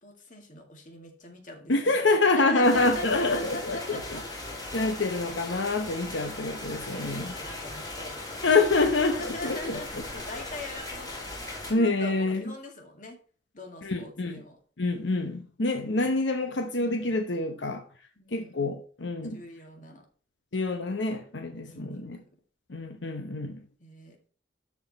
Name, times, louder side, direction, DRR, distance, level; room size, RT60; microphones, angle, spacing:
voice 1, 0.0-4.2 6.9-8.5 9.1-9.9 10.1-13.2 13.5-14.6 16.5-16.7 18.2-18.6 19.3-20.1 21.7-22.1 23.8-24.3, left 1 dB, 45° left, 2.1 m, -41 dB
voice 2, 1.7-4.0 4.7-7.3 8.4-9.8 11.7-12.4 13.8-14.4 14.8-17.8 18.3-19.4 20.5-22.2 22.7-23.6, left 3 dB, 85° left, 1.0 m, -26 dB
sound 1, 2.6-11.7, left 2 dB, 20° left, 2.6 m, -38 dB
12.5 x 4.8 x 4.2 m
head